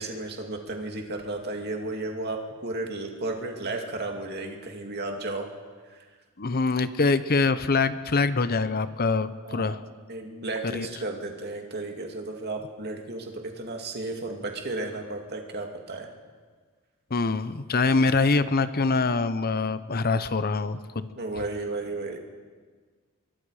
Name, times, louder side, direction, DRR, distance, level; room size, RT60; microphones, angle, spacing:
voice 1, 0.0-5.5 5.9-6.0 9.4-9.8 10.1-16.1 21.2-22.2, right 2 dB, 50° right, 3 dB, 2.4 m, -33 dB
voice 2, 6.4-9.8 10.6-10.9 17.1-21.1, left 3 dB, 45° left, 13 dB, 0.8 m, -24 dB
24.5 x 22.5 x 4.9 m, 1.5 s
head